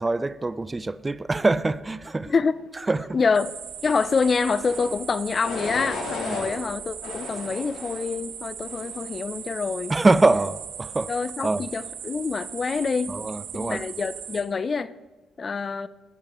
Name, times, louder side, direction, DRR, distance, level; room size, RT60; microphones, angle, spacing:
voice 1, 0.0-2.3 2.9-3.2 6.3-6.4 9.9-11.1 11.4-11.6 13.1-13.9, right 2 dB, 20° right, 0.4 m, -24 dB
voice 2, 2.3-2.6 3.1-3.5 3.8-10.0 11.1-13.1 13.5-14.9 15.4-15.9, left 5 dB, 40° left, 0.5 m, -26 dB
sound 1, 3.3-14.4, right 8 dB, 85° right, 1.5 m, -38 dB
sound 2, 4.5-4.9 5.4-6.5 7.0-8.1 8.6-9.1, left 3 dB, 85° left, 2.8 m, -35 dB
18.0 x 11.0 x 3.0 m
cardioid pair, 90°, 0 cm